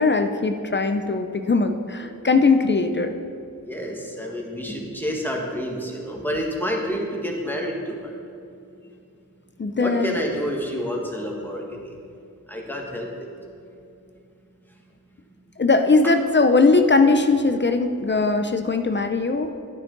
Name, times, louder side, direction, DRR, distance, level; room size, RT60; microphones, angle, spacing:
voice 1, 0.0-3.2 9.6-10.2 15.6-19.5, left 3 dB, 35° left, 7 dB, 0.6 m, -20 dB
voice 2, 3.7-8.1 9.8-11.9 12.5-13.3 16.0-16.1, equal, 5° left, -1 dB, 1.7 m, -29 dB
11.5 x 9.6 x 4.0 m, 2.6 s
wide cardioid pair, 105°, 34 cm